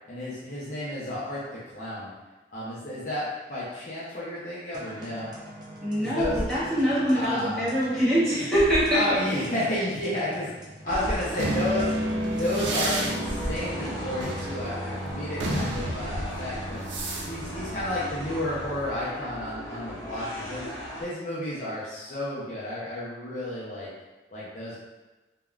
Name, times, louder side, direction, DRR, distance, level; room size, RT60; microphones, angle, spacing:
voice 1, 0.1-2.1 2.5-5.3 6.0-6.4 7.1-7.7 8.9-10.5 10.8-11.9 12.4-16.9 17.3-20.7 21.0-23.9 24.3-24.8, left 1 dB, 45° left, -8 dB, 0.5 m, -31 dB
sound 1, 4.7-14.1, equal, 25° right, 0.4 m, -39 dB
voice 2, 5.8-9.0, equal, 5° left, -13 dB, 1.0 m, -24 dB
sound 2, 10.8-21.0, equal, 20° left, 1.3 m, -39 dB
sound 3, 11.4-18.9, right 1 dB, 80° right, 0.5 m, -31 dB
3.4 x 2.1 x 2.3 m, 1.1 s
head